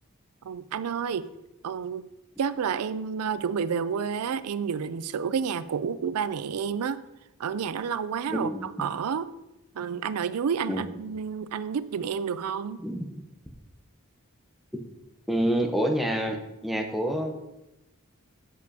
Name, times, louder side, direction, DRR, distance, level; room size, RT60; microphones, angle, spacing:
voice 1, 0.4-1.3 1.6-2.1 2.4-7.0 7.4-9.3 9.7-12.8, right 6 dB, 90° right, 14 dB, 0.4 m, -30 dB
voice 2, 8.3-8.7 10.7-10.9 12.8-13.2 15.3-16.4 16.6-17.3, right 1 dB, ahead, 2 dB, 0.8 m, -27 dB
10.5 x 7.4 x 2.8 m, 0.92 s
head